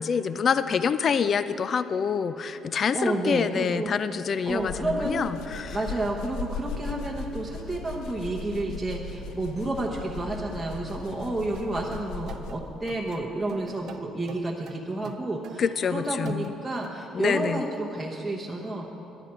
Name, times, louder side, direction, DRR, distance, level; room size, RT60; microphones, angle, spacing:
voice 1, 0.0-5.8 15.6-16.5 17.1-17.6, left 6 dB, 40° left, 13 dB, 0.4 m, -26 dB
voice 2, 2.9-3.9 4.4-5.3 5.7-15.6 15.9-18.9, right 2 dB, 5° right, -3 dB, 1.1 m, -30 dB
sound 1, 4.5-12.8, left 4 dB, 85° left, 0.8 m, -38 dB
sound 2, 11.5-16.9, right 8 dB, 60° right, 0.4 m, -44 dB
11.0 x 10.5 x 7.5 m, 3.0 s
cardioid pair, 120°, 0 cm